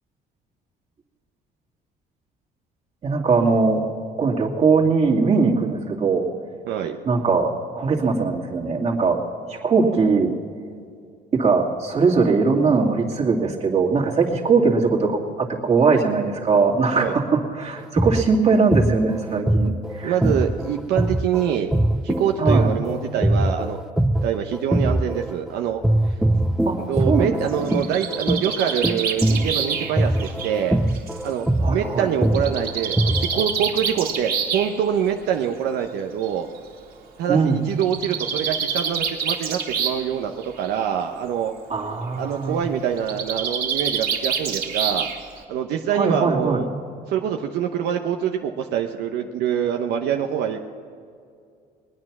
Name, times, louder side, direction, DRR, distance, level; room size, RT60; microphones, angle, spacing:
voice 1, 3.0-3.8 4.2-6.2 7.0-9.2 9.5-10.3 11.3-20.1 22.4-22.7 26.7-27.7 31.6-32.1 37.3-37.6 41.7-42.6 45.9-46.6, right 4 dB, 40° right, -1 dB, 2.4 m, -20 dB
voice 2, 6.7-7.0 16.9-17.1 20.0-21.7 22.0-23.8 24.2-26.1 26.8-30.8 31.2-36.5 37.2-40.3 40.6-41.5 42.1-45.1 45.5-46.7 47.1-50.6, right 9 dB, 80° right, 4 dB, 0.8 m, -25 dB
sound 1, 17.8-25.5 25.8-33.5, right 1 dB, 5° right, 0.5 m, -22 dB
Bird, 27.5-31.3 32.3-34.7 35.8-35.9 36.2-36.3 36.6-36.7 37.7-40.1 40.4-40.9 43.0-45.4, right 6 dB, 65° right, 2.1 m, -27 dB
21.0 x 9.8 x 6.0 m, 2.3 s
cardioid pair, 110°, 17 cm